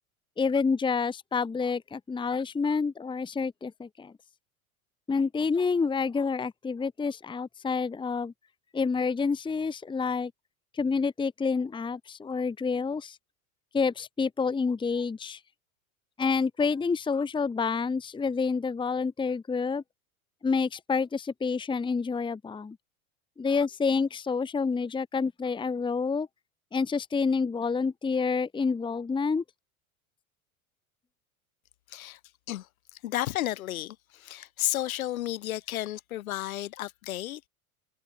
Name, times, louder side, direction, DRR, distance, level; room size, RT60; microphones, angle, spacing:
voice 1, 0.4-4.1 5.1-8.3 8.7-10.3 10.7-13.2 13.7-15.4 16.2-19.8 20.4-22.8 23.4-26.3 26.7-29.4, left 5 dB, 10° left, 1.0 m, -28 dB
voice 2, 31.9-32.2 32.5-37.5, left 14 dB, 70° left, 2.9 m, -33 dB
hypercardioid pair, 85°, 43 cm